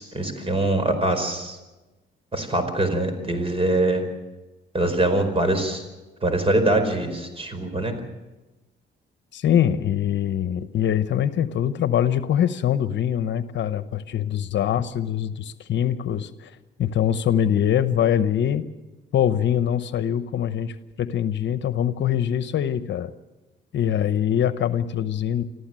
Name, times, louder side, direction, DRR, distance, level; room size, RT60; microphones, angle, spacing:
voice 1, 0.0-1.6 2.3-4.0 4.7-5.8 6.2-7.9, right 2 dB, 30° right, 9 dB, 4.7 m, -23 dB
voice 2, 9.3-16.5 16.8-18.7 19.1-23.1 23.7-25.4, left 10 dB, 65° left, 12 dB, 1.0 m, -23 dB
25.5 x 14.5 x 7.6 m, 1.1 s
cardioid pair, 90°, 20 cm